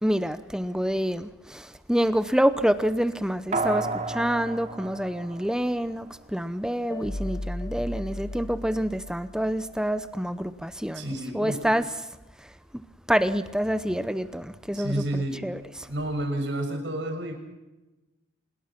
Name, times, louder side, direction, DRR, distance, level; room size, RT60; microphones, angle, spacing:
voice 1, 0.0-11.1 11.3-12.1 12.4-12.8 13.1-15.9, equal, 5° right, 0.7 m, -27 dB
sound 1, 3.5-6.1 6.4-6.5, right 3 dB, 35° right, 2.7 m, -32 dB
sound 2, 6.9-10.1, left 1 dB, 20° left, 1.0 m, -36 dB
voice 2, 10.9-11.6 14.7-15.4 15.8-17.3, right 1 dB, 65° right, 6.7 m, -30 dB
27.0 x 21.5 x 5.9 m
head